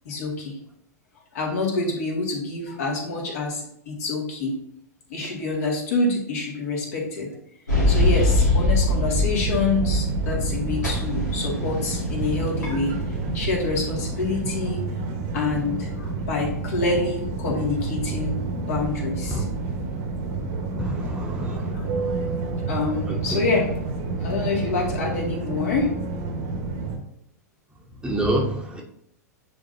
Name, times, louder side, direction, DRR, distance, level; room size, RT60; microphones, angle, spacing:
voice 1, 0.0-0.6 1.3-4.6 5.1-7.3 7.9-14.8 15.3-18.4 18.7-19.5 21.7-21.9 22.7-23.7 24.2-25.9, left 3 dB, 60° left, -2 dB, 2.2 m, -27 dB
sound 1, 7.7-10.5 10.8-14.3, left 2 dB, 85° left, 2.0 m, -24 dB
sound 2, 7.7-27.0, right 3 dB, 45° right, 1.3 m, -29 dB
voice 2, 20.8-21.7 23.3-23.4 28.0-28.8, right 1 dB, 10° right, -1 dB, 1.1 m, -27 dB
9.4 x 3.8 x 2.7 m, 0.72 s
figure-of-eight pair, 95°, 9 cm